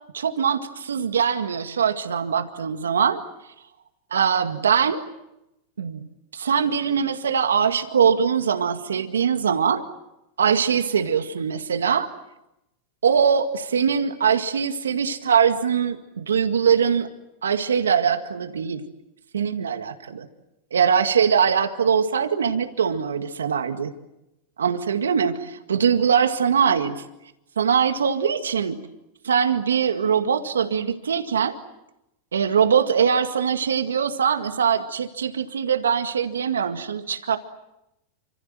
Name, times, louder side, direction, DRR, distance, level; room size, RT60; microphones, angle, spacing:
voice 1, 0.1-3.2 4.1-5.1 5.8-6.0 6.3-9.8 10.4-12.1 13.0-17.1 17.4-18.8 19.3-20.3 20.7-23.9 24.6-27.0 27.6-28.8 29.2-31.6 32.3-37.4, right 7 dB, 85° right, 7 dB, 2.0 m, -22 dB
29.0 x 26.5 x 7.7 m, 0.90 s
hypercardioid pair, 100°, 0 cm